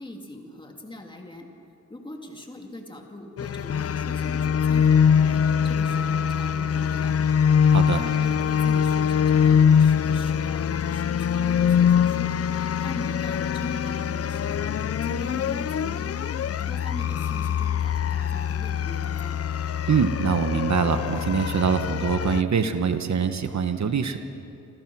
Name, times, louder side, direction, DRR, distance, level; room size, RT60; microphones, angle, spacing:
voice 1, 0.0-1.5 1.9-7.1 7.9-14.8 15.0-16.1 16.7-19.4, left 1 dB, 15° left, 2 dB, 2.6 m, -41 dB
sound 1, 3.4-22.4, left 7 dB, 50° left, 0.5 m, -23 dB
sound 2, 6.5-7.3 7.5-9.6 9.9-10.7, left 3 dB, 75° left, 6.7 m, -50 dB
voice 2, 7.7-8.0 19.9-24.2, right 6 dB, 65° right, 7 dB, 1.3 m, -24 dB
29.0 x 26.0 x 6.2 m, 2.7 s
wide cardioid pair, 160°, 31 cm